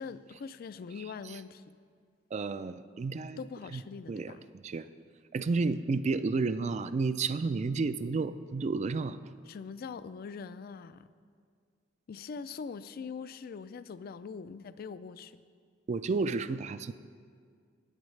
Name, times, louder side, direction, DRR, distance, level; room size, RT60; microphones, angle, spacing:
voice 1, 0.0-1.7 3.4-4.4 9.5-11.1 12.1-15.4, left 5 dB, 55° left, 14 dB, 0.3 m, -42 dB
voice 2, 2.3-3.4 3.7-3.8 4.1-4.9 5.3-9.2 15.9-16.9, right 4 dB, 40° right, 13 dB, 0.3 m, -31 dB
16.0 x 8.7 x 3.2 m, 2.1 s
head